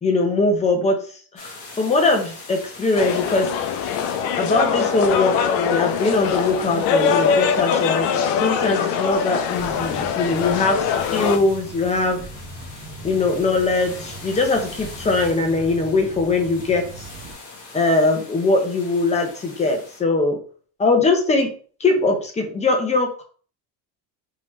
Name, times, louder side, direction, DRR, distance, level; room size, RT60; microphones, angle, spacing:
voice 1, 0.0-3.5 4.4-10.8 11.1-12.3 13.0-17.0 17.7-20.4 20.8-21.5 21.8-23.2, left 3 dB, 15° left, 3 dB, 0.6 m, -21 dB
sound 1, 1.4-20.0, left 3 dB, 40° left, 1.1 m, -42 dB
sound 2, 3.0-11.4, left 7 dB, 75° left, 0.6 m, -22 dB
sound 3, 9.5-17.3, right 2 dB, 15° right, 1.0 m, -39 dB
3.7 x 2.9 x 3.1 m, 0.43 s
cardioid pair, 140°, 43 cm